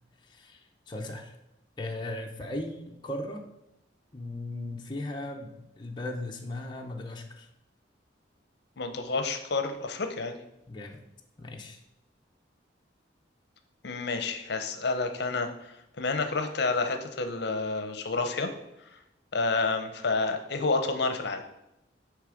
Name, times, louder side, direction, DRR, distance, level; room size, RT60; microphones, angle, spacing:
voice 1, 0.2-1.3 1.8-3.5 4.1-7.5 10.7-11.0 11.4-11.8, left 1 dB, 25° left, 1 dB, 0.6 m, -37 dB
voice 2, 8.8-10.4 13.8-15.5 16.0-18.5 19.3-21.4, left 3 dB, 60° left, 7 dB, 0.7 m, -29 dB
9.2 x 3.4 x 5.0 m, 0.87 s
head